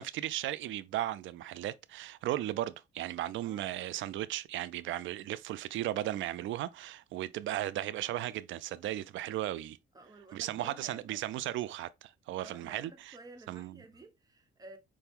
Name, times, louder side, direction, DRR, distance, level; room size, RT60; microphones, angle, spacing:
voice 1, 0.0-9.8 10.3-13.1 13.5-13.8, right 13 dB, 75° right, 0.4 m, -36 dB
voice 2, 9.9-11.2 12.4-14.8, right 2 dB, 20° right, 1.0 m, -52 dB
6.0 x 2.2 x 3.5 m
cardioid pair, 90°, 20 cm